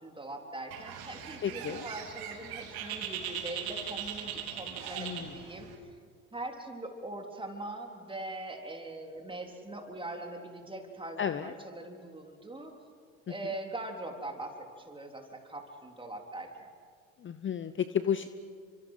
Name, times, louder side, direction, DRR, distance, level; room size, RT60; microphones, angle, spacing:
voice 1, 0.0-5.7 6.3-12.7 13.3-16.7, right 2 dB, 10° right, 3 dB, 3.8 m, -42 dB
Bird, 0.7-5.8, right 9 dB, 60° right, 3.1 m, -40 dB
voice 2, 1.4-1.8 5.0-5.3 11.2-11.5 17.2-18.3, left 8 dB, 30° left, 12 dB, 0.8 m, -32 dB
29.5 x 25.0 x 5.9 m, 2.1 s
hypercardioid pair, 65°, 41 cm